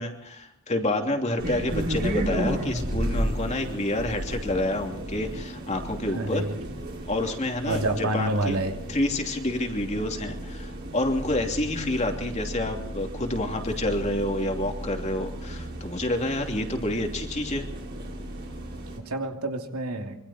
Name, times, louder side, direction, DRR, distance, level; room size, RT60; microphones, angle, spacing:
voice 1, 0.0-6.4 7.1-8.6 8.9-17.6, left 1 dB, 30° left, 3 dB, 2.9 m, -28 dB
sound 1, 1.4-19.0, right 1 dB, 45° right, 5.7 m, -34 dB
voice 2, 6.0-6.6 7.7-8.8 19.0-20.2, right 1 dB, 85° right, 4 dB, 2.9 m, -28 dB
25.5 x 24.5 x 4.4 m, 0.72 s
head